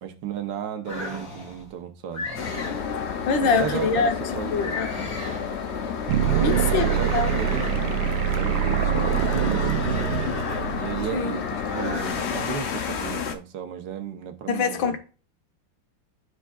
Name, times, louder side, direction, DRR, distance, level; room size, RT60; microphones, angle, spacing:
voice 1, 0.0-2.3 3.4-4.7 6.2-7.7 8.4-10.1 10.7-15.0, right 9 dB, 70° right, 1.5 m, -34 dB
sound 1, 0.8-1.6 2.1-2.9 3.4-4.0 4.6-5.6 6.1-8.0 8.8-11.0 11.6-12.4, left 2 dB, 35° left, 2.0 m, -35 dB
sound 2, 2.4-13.4, left 6 dB, 70° left, 0.6 m, -30 dB
voice 2, 3.3-5.1 6.4-7.4 11.1-11.4 14.5-15.0, left 5 dB, 85° left, 1.7 m, -25 dB
sound 3, 6.1-11.1, right 13 dB, 90° right, 1.4 m, -25 dB
12.5 x 4.6 x 2.3 m
omnidirectional pair, 2.1 m